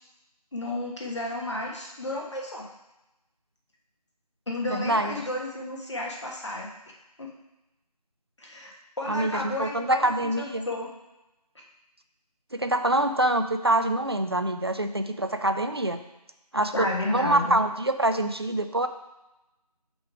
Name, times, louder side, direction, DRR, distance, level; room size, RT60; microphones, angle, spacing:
voice 1, 0.5-2.6 4.5-6.7 7.2-7.3 8.4-8.7 9.0-10.9 16.7-17.6, left 1 dB, 45° left, -2 dB, 1.4 m, -32 dB
voice 2, 4.7-5.2 9.1-10.7 12.5-16.0 16.5-18.9, right 1 dB, 40° right, 8 dB, 0.4 m, -25 dB
7.6 x 3.1 x 4.8 m, 0.96 s
figure-of-eight pair, 165°, 21 cm